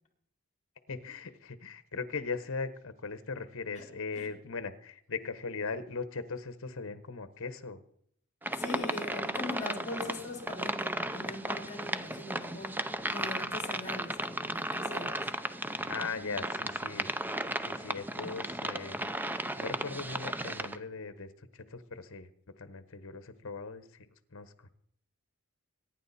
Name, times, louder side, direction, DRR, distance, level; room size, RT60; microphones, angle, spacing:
voice 1, 0.9-7.8 15.9-17.1 17.5-19.0 19.3-22.3 22.6-24.7, left 4 dB, 60° left, 12 dB, 1.1 m, -39 dB
sound 1, 8.4-20.8, right 1 dB, 10° right, 0.5 m, -35 dB
voice 2, 8.5-15.2, left 2 dB, 30° left, 2 dB, 3.2 m, -41 dB
23.0 x 10.0 x 4.2 m, 0.66 s
head